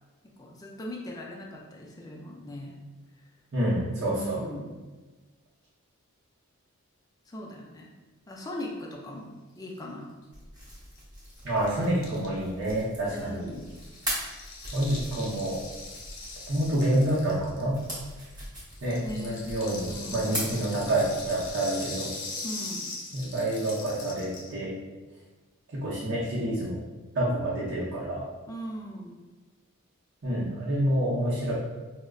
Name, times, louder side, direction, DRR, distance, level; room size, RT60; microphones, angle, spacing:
voice 1, 0.2-2.8 4.1-4.8 7.3-7.9 8.3-10.1 13.0-13.8 19.0-19.4 19.9-20.5 22.4-22.9 28.5-29.2, left 1 dB, 15° left, -1 dB, 0.4 m, -39 dB
voice 2, 3.5-4.4 11.4-13.4 14.7-15.6 16.5-17.8 18.8-22.1 23.1-24.7 25.7-26.8 27.1-28.3 30.2-31.5, right 1 dB, 50° right, -7 dB, 0.7 m, -28 dB
sound 1, 10.3-21.5, equal, 15° right, 0.9 m, -41 dB
Rattle (instrument), 10.7-10.8 10.9-11.0 11.2-18.4 18.7-24.6, left 3 dB, 55° left, 0.7 m, -41 dB
4.7 x 2.1 x 2.3 m, 1.3 s
head